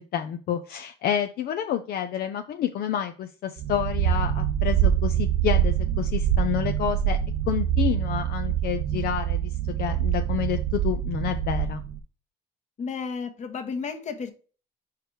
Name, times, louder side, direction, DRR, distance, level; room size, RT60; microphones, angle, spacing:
voice 1, 0.0-7.2 7.5-9.5 9.8-11.8, left 10 dB, 65° left, 0.7 m, -29 dB
sound 1, 3.6-12.0, right 10 dB, 75° right, 0.7 m, -25 dB
voice 2, 12.8-14.3, left 5 dB, 45° left, 1.3 m, -32 dB
4.9 x 4.7 x 4.7 m
cardioid pair, 110°, 17 cm